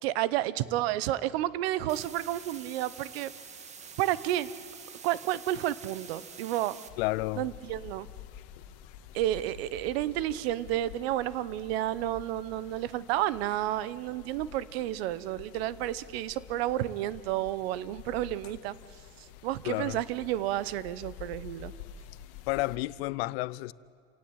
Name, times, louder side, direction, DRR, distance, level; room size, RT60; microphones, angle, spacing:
voice 1, 0.0-3.3 4.0-4.5 5.0-6.8 7.4-8.1 9.1-18.7 19.4-21.7, right 14 dB, 85° right, 1.1 m, -31 dB
sound 1, 1.9-6.9, right 6 dB, 25° right, 1.5 m, -47 dB
sound 2, 6.9-22.8, left 9 dB, 65° left, 1.6 m, -49 dB
voice 2, 7.0-7.5 19.6-20.0 22.5-23.7, left 21 dB, 85° left, 0.7 m, -31 dB
29.0 x 17.5 x 8.9 m
cardioid pair, 160°, 30 cm